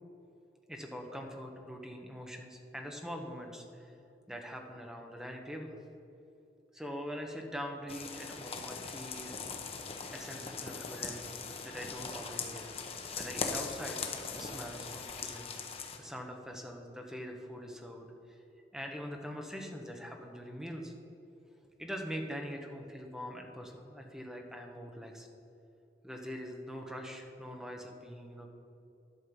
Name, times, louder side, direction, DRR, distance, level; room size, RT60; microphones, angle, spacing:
voice 1, 0.7-3.9 4.3-5.8 6.7-9.5 10.1-14.0 14.3-18.4 18.7-20.9 21.8-25.3 26.0-28.5, equal, 5° right, 2 dB, 1.0 m, -43 dB
sound 1, 7.9-16.0, left 5 dB, 35° left, 0.9 m, -40 dB
11.5 x 6.5 x 5.4 m, 2.9 s
head